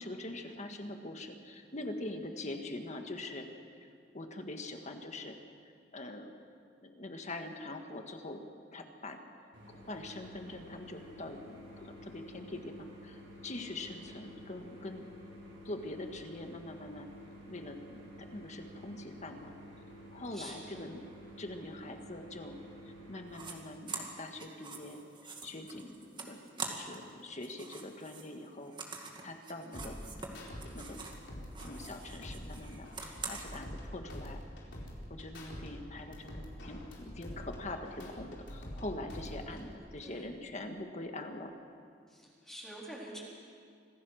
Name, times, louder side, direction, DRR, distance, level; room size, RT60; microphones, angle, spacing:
voice 1, 0.0-3.5 3.8-3.9 4.1-5.4 5.6-6.3 6.8-8.4 8.7-9.2 9.7-15.1 15.7-17.1 17.5-19.5 20.1-21.0 21.4-22.6 22.9-25.0 25.4-30.0 30.6-31.0 31.6-34.4 35.1-41.5, left 2 dB, 40° left, 5 dB, 1.7 m, -43 dB
voice 2, 2.1-2.4 14.0-14.3 20.3-20.9 29.8-30.2 39.4-40.3 42.1-43.2, right 1 dB, 5° left, -5 dB, 3.7 m, -49 dB
sound 1, 9.5-23.5, equal, 90° right, 5.6 m, -51 dB
sound 2, 23.3-23.5 23.9-27.1 27.4-31.2 31.5-33.6, right 4 dB, 25° right, 2.1 m, -45 dB
sound 3, 29.7-30.7 31.0-33.8 34.1-35.7 36.0-38.8 39.1-39.7, equal, 75° left, 4.3 m, -45 dB
26.0 x 15.5 x 6.6 m, 2.2 s
head